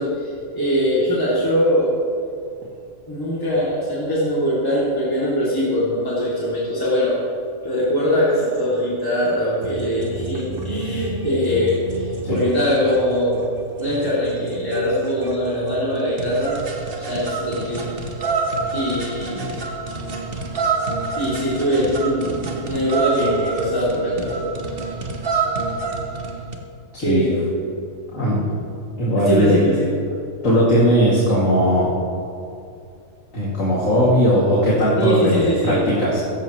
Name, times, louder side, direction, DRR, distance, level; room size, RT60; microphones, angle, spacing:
voice 1, 0.0-1.9 3.1-7.2 7.6-13.5 13.8-16.5 17.0-17.9 18.2-18.3 18.7-19.6 21.2-24.5 27.0-27.6 29.2-29.9 35.0-35.8, equal, 15° left, -8 dB, 2.7 m, -22 dB
sound 1, 9.6-26.5, right 4 dB, 45° right, 1.4 m, -28 dB
voice 2, 29.0-29.6 30.4-31.9 33.3-36.2, equal, 75° left, -6 dB, 2.8 m, -18 dB
16.5 x 15.0 x 3.1 m, 2.5 s
omnidirectional pair, 1.4 m